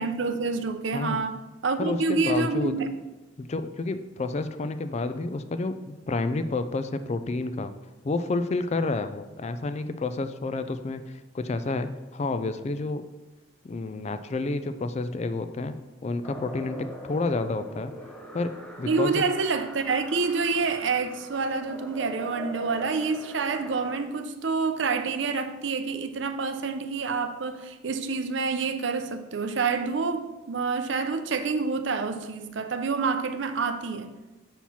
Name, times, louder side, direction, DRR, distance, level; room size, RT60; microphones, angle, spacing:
voice 1, 0.0-2.9 18.8-34.2, right 4 dB, 65° right, 0.6 m, -28 dB
voice 2, 0.9-1.2 1.8-2.7 3.4-7.7 8.0-13.0 13.6-15.7 16.0-17.9 18.3-18.5 18.8-19.2, left 3 dB, 35° left, 0.3 m, -30 dB
sound 1, 16.2-24.0, equal, 5° left, 0.8 m, -42 dB
7.2 x 4.4 x 5.7 m
head